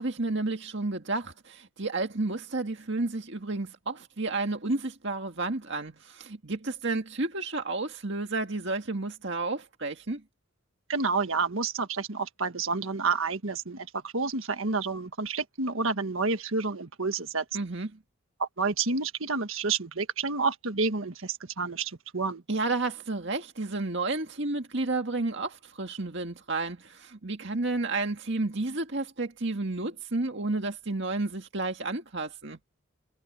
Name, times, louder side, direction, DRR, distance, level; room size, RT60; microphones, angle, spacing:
voice 1, 0.0-10.2 17.5-17.9 22.5-32.6, right 2 dB, 55° right, 2.0 m, -31 dB
voice 2, 10.9-17.4 18.4-22.4, right 4 dB, 70° right, 1.5 m, -29 dB
head